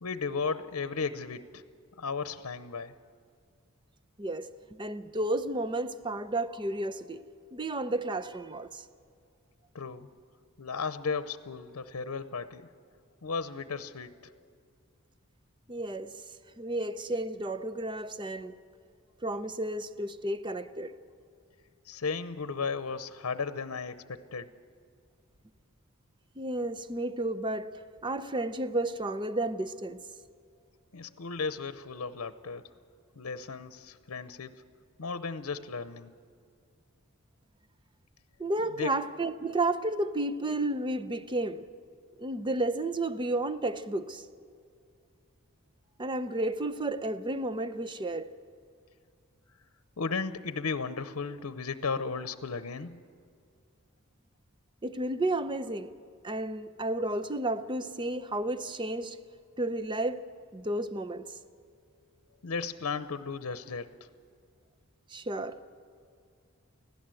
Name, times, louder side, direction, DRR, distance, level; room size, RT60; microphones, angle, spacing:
voice 1, 0.0-1.6 2.0-2.9 9.7-10.1 10.6-12.7 13.2-14.3 21.9-24.5 30.9-32.6 33.2-34.7 35.0-36.1 38.8-38.9 50.0-53.0 62.4-63.9, left 4 dB, 85° left, 0.8 m, -35 dB
voice 2, 4.2-7.2 7.5-8.8 15.7-16.2 16.6-18.6 19.2-20.9 26.4-30.0 38.4-41.7 42.2-44.2 46.0-48.3 54.8-55.9 56.2-59.2 59.6-60.2 60.5-61.3 65.1-65.6, right 2 dB, 20° right, 0.6 m, -32 dB
25.0 x 16.5 x 7.7 m
head